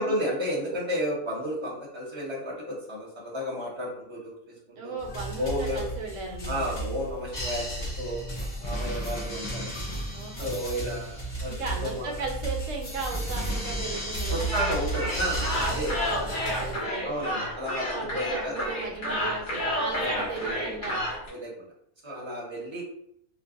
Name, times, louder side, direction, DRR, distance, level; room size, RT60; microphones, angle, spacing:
voice 1, 0.0-4.9 5.4-5.8 6.5-9.7 10.4-11.5 11.8-12.1 14.3-15.9 17.0-18.7 20.0-20.3 21.3-21.7 22.0-22.8, equal, 25° right, -3 dB, 0.8 m, -32 dB
voice 2, 4.8-6.8 10.1-10.6 11.4-14.8 15.5-17.2 17.9-19.5 19.7-21.0, right 4 dB, 70° right, 1 dB, 1.0 m, -36 dB
sound 1, 5.0-16.7, right 1 dB, 35° left, 1.2 m, -33 dB
sound 2, 14.3-21.3, equal, 65° left, 1.7 m, -31 dB
4.4 x 2.1 x 2.4 m, 0.72 s
omnidirectional pair, 1.5 m